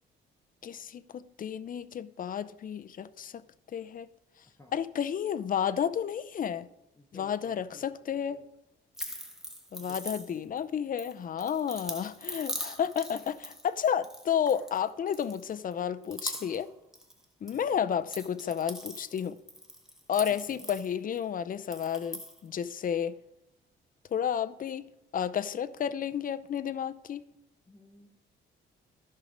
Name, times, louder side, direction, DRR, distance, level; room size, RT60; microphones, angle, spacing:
voice 1, 0.6-3.4 3.7-4.1 4.7-6.7 7.1-8.4 9.7-16.7 17.4-19.4 20.1-23.1 24.1-24.9 25.1-27.2, left 8 dB, 45° left, 0.6 m, -31 dB
voice 2, 7.0-7.8 8.3-8.4 9.8-10.9 17.5-17.9 20.3-20.7 27.6-28.2, left 1 dB, 15° left, 1.0 m, -55 dB
sound 1, 9.0-10.6 11.0-14.8 15.1-15.7 16.0-16.7 16.9-17.6 17.9-21.2 21.6-22.4, equal, ahead, 1.3 m, -41 dB
13.0 x 5.8 x 5.1 m
cardioid pair, 105°, 20 cm